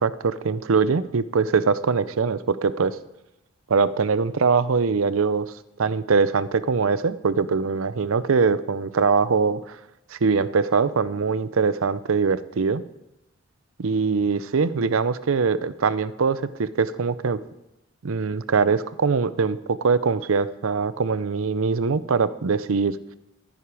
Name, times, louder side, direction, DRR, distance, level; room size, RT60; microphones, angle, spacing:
voice 1, 0.0-3.0 3.7-5.5 5.8-9.8 10.1-12.8 13.8-17.4 18.0-23.0, right 5 dB, 75° right, 15 dB, 0.6 m, -22 dB
13.0 x 10.0 x 4.8 m, 0.91 s
head